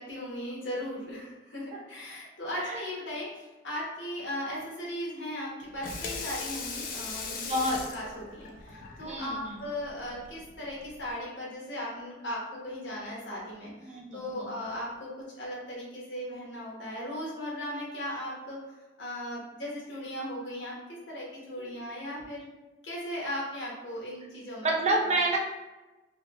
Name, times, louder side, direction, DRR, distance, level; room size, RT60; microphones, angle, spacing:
voice 1, 0.0-7.6 7.9-20.8 21.1-22.5 22.8-24.7, equal, 70° left, -5 dB, 1.1 m, -37 dB
Water tap faucet / Sink (filling or washing), 5.6-11.1, left 4 dB, 50° left, 0.4 m, -40 dB
voice 2, 7.4-7.8 9.0-9.6 13.8-14.5 21.6-21.7 24.6-25.4, right 2 dB, 35° right, -1 dB, 0.5 m, -29 dB
3.4 x 2.2 x 2.9 m, 1.1 s
head